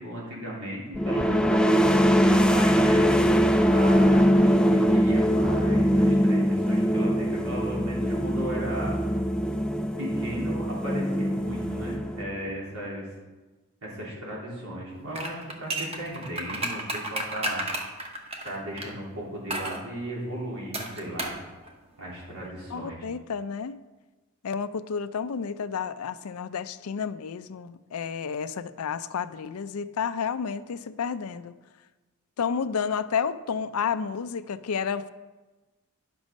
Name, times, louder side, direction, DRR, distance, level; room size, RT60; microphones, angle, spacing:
voice 1, 0.0-3.0 3.7-8.9 10.0-13.1 13.8-17.6 18.4-21.3 22.0-23.0, right 1 dB, 85° right, -5 dB, 3.4 m, -36 dB
sound 1, 0.9-12.5, equal, 5° left, 0.3 m, -22 dB
sound 2, 15.1-18.9 19.5-19.8 20.7-21.4 21.7-21.8, right 2 dB, 25° right, 1.0 m, -32 dB
voice 2, 22.7-23.8 24.4-31.5 32.4-35.1, left 6 dB, 85° left, 13 dB, 0.4 m, -31 dB
10.5 x 6.1 x 5.2 m, 1.2 s
head